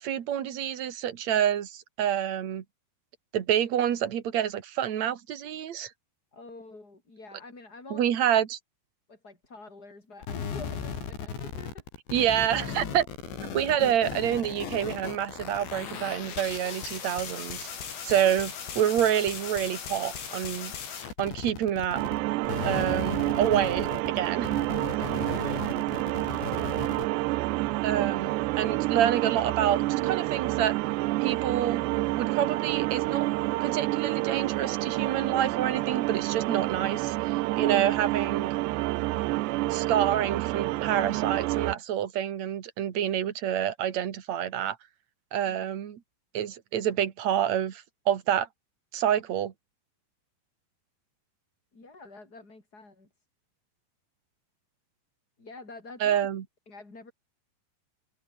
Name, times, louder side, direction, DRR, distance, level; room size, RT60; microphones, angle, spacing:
voice 1, 0.0-2.6 3.3-5.9 7.9-8.6 12.1-13.1 13.5-17.7 18.0-18.5 18.8-20.7 21.2-22.0 22.6-24.5 27.8-30.8 31.2-31.8 32.1-33.3 33.6-38.5 39.7-44.8 45.3-46.0 46.3-48.5 48.9-49.5 56.0-56.4, right 10 dB, 55° right, 2.3 m, -27 dB
voice 2, 6.3-8.1 9.1-11.8 18.1-18.3 24.7-25.9 45.4-45.7 51.7-53.1 55.4-56.3 56.7-57.1, left 3 dB, 20° left, 5.7 m, -47 dB
sound 1, 10.2-22.2 22.4-27.0, left 7 dB, 70° left, 6.9 m, -37 dB
sound 2, 22.0-41.8, right 19 dB, 80° right, 2.7 m, -28 dB
omnidirectional pair, 5.3 m